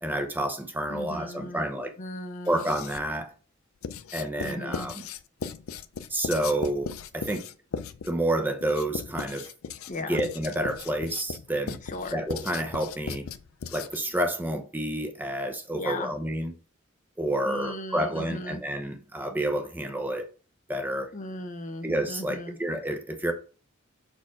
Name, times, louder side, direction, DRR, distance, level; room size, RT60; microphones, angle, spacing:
voice 1, 0.0-1.9 2.5-3.3 4.1-5.0 6.1-7.4 8.1-9.5 10.1-11.8 12.1-13.2 13.7-16.5 17.2-20.3 20.7-21.1 21.8-23.3, right 1 dB, 10° right, 0.8 m, -29 dB
voice 2, 0.9-1.6 2.0-2.7 4.4-4.9 9.9-10.2 11.8-12.2 15.7-16.1 17.4-18.6 21.1-22.6, left 2 dB, 40° left, 0.7 m, -37 dB
Writing, 2.5-3.2 3.8-14.2, left 6 dB, 90° left, 0.5 m, -37 dB
6.0 x 4.4 x 3.6 m
head